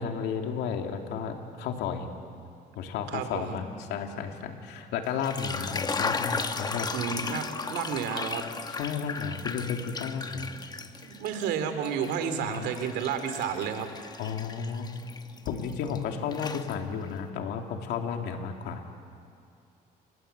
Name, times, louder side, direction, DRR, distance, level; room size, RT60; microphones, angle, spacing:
voice 1, 0.0-2.1 2.7-6.9 8.7-10.5 12.3-12.7 14.2-14.9 15.4-18.9, left 6 dB, 85° left, 3 dB, 2.7 m, -33 dB
voice 2, 3.1-3.6 6.9-8.4 11.0-13.9, right 7 dB, 85° right, 8 dB, 2.8 m, -31 dB
sound 1, 5.1-11.5 11.8-16.0 16.3-17.1, left 4 dB, 25° left, 1.1 m, -35 dB
29.5 x 21.0 x 8.2 m, 2.4 s
cardioid pair, 110°, 17 cm